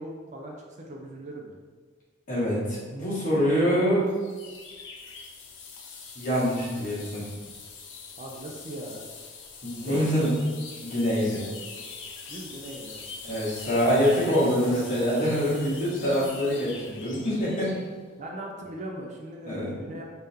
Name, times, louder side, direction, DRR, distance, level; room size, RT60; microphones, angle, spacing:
voice 1, 0.0-1.6 8.2-9.1 9.8-10.3 12.3-13.0 13.3-13.8 18.2-20.0, right 1 dB, 40° right, 0 dB, 0.4 m, -39 dB
voice 2, 2.3-4.1 6.1-7.2 9.6-10.3 10.8-11.4 13.2-17.7 19.5-19.8, equal, 45° left, -8 dB, 1.4 m, -25 dB
sound 1, 4.1-17.9, left 4 dB, 70° left, 0.5 m, -43 dB
3.7 x 2.8 x 3.4 m, 1.5 s
head